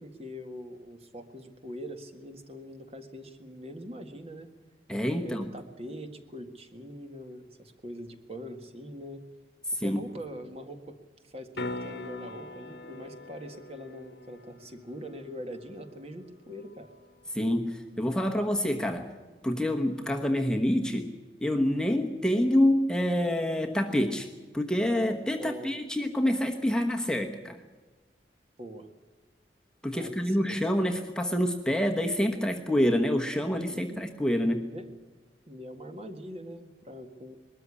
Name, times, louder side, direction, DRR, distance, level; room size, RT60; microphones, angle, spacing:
voice 1, 0.0-4.5 5.2-9.2 9.8-11.0 11.2-16.9 25.4-25.7 28.6-28.9 30.0-30.6 33.7-34.1 34.7-34.9 35.5-37.4, equal, 35° right, 6 dB, 1.8 m, -42 dB
voice 2, 4.9-5.5 9.7-10.0 17.3-19.1 19.4-21.1 21.4-24.3 24.5-27.6 29.8-34.7, left 1 dB, 5° left, 2 dB, 1.1 m, -27 dB
sound 1, 11.5-17.6 22.3-22.4, left 2 dB, 80° left, 1.3 m, -43 dB
21.5 x 13.5 x 9.9 m, 1.3 s
head